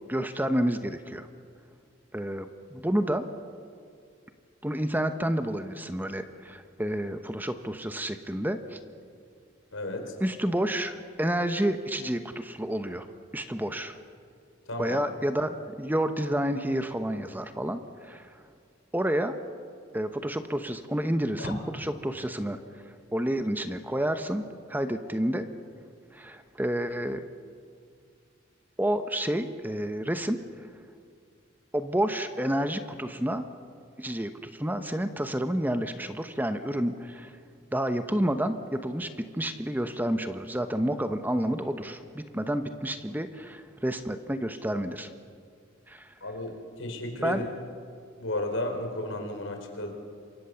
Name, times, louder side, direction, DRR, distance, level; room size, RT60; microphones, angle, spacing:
voice 1, 0.1-1.3 2.1-3.2 4.6-8.8 10.2-13.1 13.3-14.0 14.8-18.3 18.9-19.3 19.9-22.8 23.1-25.5 26.1-27.2 28.8-30.4 31.7-33.5 34.0-37.3 37.7-45.1 45.9-46.1 47.2-47.5, right 1 dB, 10° right, 8 dB, 1.0 m, -29 dB
voice 2, 9.7-10.1 14.7-15.0 21.4-21.5 46.2-46.5 46.8-47.4 48.2-49.9, left 1 dB, 85° left, 4 dB, 4.6 m, -33 dB
27.5 x 24.0 x 7.0 m, 2.2 s
head